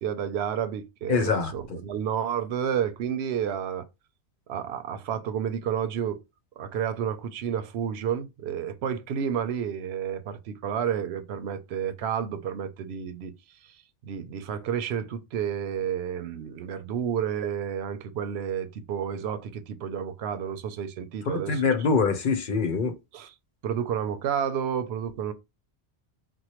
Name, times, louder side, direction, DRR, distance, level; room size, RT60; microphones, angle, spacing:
voice 1, 0.0-3.9 4.5-6.2 6.6-13.3 14.0-21.6 23.1-23.3 23.6-25.3, right 8 dB, 90° right, 0.8 m, -30 dB
voice 2, 1.1-1.8 21.3-23.0, left 4 dB, 60° left, 0.8 m, -25 dB
4.4 x 2.1 x 2.9 m
omnidirectional pair, 1.0 m